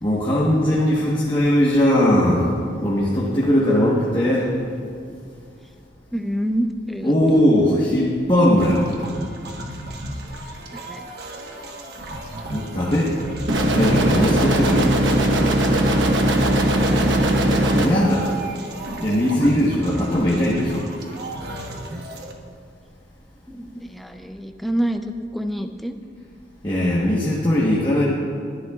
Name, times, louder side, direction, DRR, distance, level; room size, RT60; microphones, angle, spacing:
voice 1, 0.0-2.5 2.8-4.5 5.1-5.2 7.0-8.8 12.5-13.2 13.7-15.0 17.7-18.3 19.0-20.9 26.6-28.0, equal, 25° left, -6 dB, 1.2 m, -19 dB
voice 2, 6.1-7.4 10.7-11.1 16.8-17.1 23.5-26.0, equal, ahead, 6 dB, 0.4 m, -27 dB
sound 1, 8.6-22.3, right 1 dB, 60° right, 1.1 m, -34 dB
sound 2, 13.5-17.9, right 1 dB, 85° right, 1.1 m, -19 dB
20.5 x 11.5 x 2.4 m, 2.3 s
head